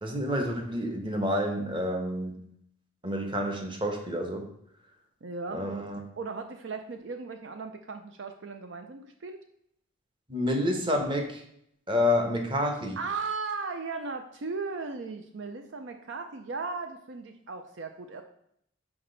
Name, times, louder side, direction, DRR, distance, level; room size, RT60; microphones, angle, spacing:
voice 1, 0.0-2.4 3.0-4.5 5.5-6.0 10.3-11.4 11.9-13.0, left 1 dB, 25° right, 3 dB, 0.9 m, -29 dB
voice 2, 5.2-5.6 6.2-9.4 13.0-18.2, right 4 dB, 60° right, 6 dB, 0.5 m, -36 dB
5.9 x 5.2 x 3.9 m, 0.72 s
head